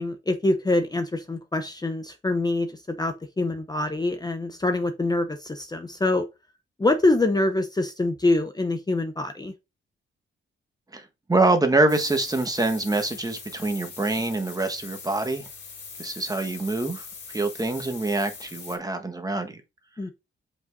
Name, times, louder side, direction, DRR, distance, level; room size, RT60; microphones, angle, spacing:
voice 1, 0.0-6.3 6.8-9.5 20.0-20.1, left 2 dB, 20° left, 0.8 m, -25 dB
voice 2, 10.9-15.5 16.0-19.6, right 2 dB, 15° right, 1.5 m, -25 dB
sound 1, 11.9-18.8, left 5 dB, 55° left, 3.1 m, -41 dB
7.6 x 5.4 x 4.0 m
wide cardioid pair, 120°, 21 cm